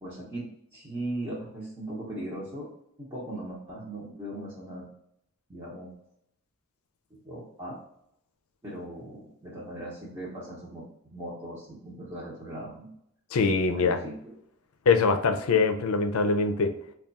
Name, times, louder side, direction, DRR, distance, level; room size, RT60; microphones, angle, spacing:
voice 1, 0.0-2.7 3.0-4.9 5.5-5.9 7.1-7.8 8.6-12.9 13.8-14.2, right 1 dB, 20° right, -7 dB, 0.8 m, -38 dB
voice 2, 13.3-14.0 14.9-16.7, left 4 dB, 80° left, 7 dB, 0.5 m, -23 dB
3.5 x 2.3 x 3.9 m, 0.73 s
head